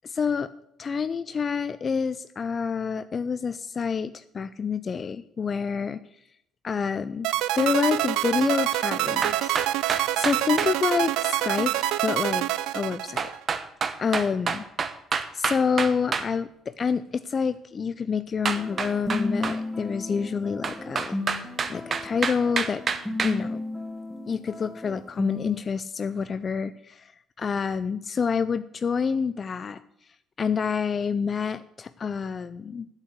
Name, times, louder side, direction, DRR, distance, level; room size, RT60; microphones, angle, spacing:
voice 1, 0.0-0.5 0.8-6.0 6.6-7.3 7.6-9.5 10.2-12.4 12.7-13.3 14.0-14.6 15.3-22.8 23.2-23.6 24.3-27.0 27.4-29.8 30.4-32.9, left 6 dB, 40° left, 13 dB, 0.5 m, -28 dB
sound 1, 7.2-13.5, right 15 dB, 75° right, 0.4 m, -26 dB
sound 2, 9.2-10.7 13.2-16.3 18.5-19.6 20.6-23.4, right 5 dB, 45° right, 0.9 m, -28 dB
sound 3, 18.5-25.6, left 2 dB, 5° left, 2.3 m, -34 dB
8.1 x 8.1 x 8.1 m, 0.76 s
hypercardioid pair, 60°, 0 cm